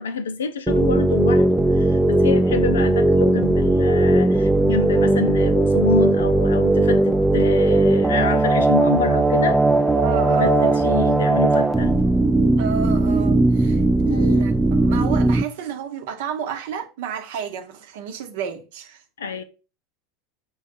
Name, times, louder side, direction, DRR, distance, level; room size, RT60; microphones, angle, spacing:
voice 1, 0.0-9.6 10.3-12.0 14.1-14.5 19.2-19.4, left 5 dB, 75° left, 0.5 m, -27 dB
sound 1, 0.7-15.4, right 2 dB, 10° right, 0.4 m, -18 dB
voice 2, 10.0-10.8 12.6-13.8 14.1-19.0, right 6 dB, 65° right, 0.8 m, -30 dB
5.3 x 2.3 x 4.2 m
figure-of-eight pair, 80°, 0 cm